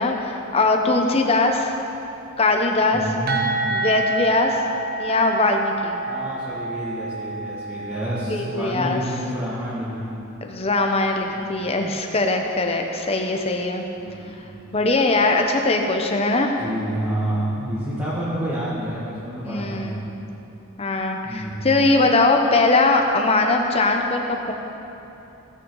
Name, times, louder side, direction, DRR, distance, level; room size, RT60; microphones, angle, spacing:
voice 1, 0.0-1.7 2.4-3.0 3.7-4.6 5.0-6.0 8.3-9.0 10.4-13.9 14.7-16.5 19.4-20.0 20.8-24.5, left 2 dB, 25° left, 3 dB, 0.7 m, -21 dB
voice 2, 2.9-3.4 6.1-10.1 11.3-11.6 14.0-14.5 16.6-20.0 21.2-21.8, equal, 15° right, -11 dB, 1.8 m, -29 dB
sound 1, 3.3-8.9, right 3 dB, 45° right, 1.1 m, -28 dB
16.5 x 6.2 x 3.9 m, 3.0 s
head